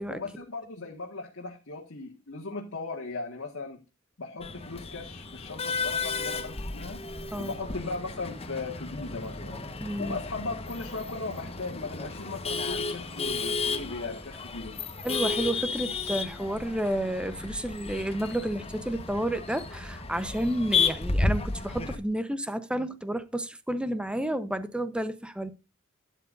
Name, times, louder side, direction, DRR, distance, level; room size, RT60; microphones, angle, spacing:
voice 1, 0.1-3.8 4.2-7.0 7.4-9.6 10.0-14.8, left 3 dB, 65° left, 1.7 m, -37 dB
Male speech man speaking / Laughter / Chatter, 4.4-22.0, left 4 dB, 30° left, 1.1 m, -33 dB
voice 2, 9.8-10.2 15.0-25.5, right 1 dB, 5° right, 0.8 m, -31 dB
12.0 x 9.2 x 2.5 m
head